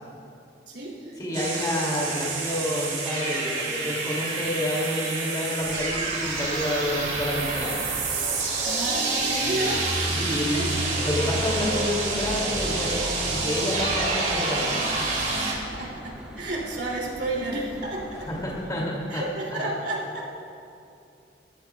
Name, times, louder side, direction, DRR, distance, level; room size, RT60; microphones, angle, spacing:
voice 1, 0.7-1.2 8.6-9.8 10.2-10.9 15.4-18.3 19.1-20.3, right 2 dB, 80° right, -3 dB, 3.0 m, -31 dB
voice 2, 1.2-7.7 10.3-10.7 11.0-15.0 18.3-19.2 19.5-19.7, left 1 dB, 20° left, -4 dB, 2.8 m, -29 dB
sound 1, 1.3-15.5, right 3 dB, 45° right, 2.6 m, -28 dB
sound 2, 5.6-18.6, equal, 5° right, 1.6 m, -44 dB
22.0 x 14.0 x 2.4 m, 2.6 s
head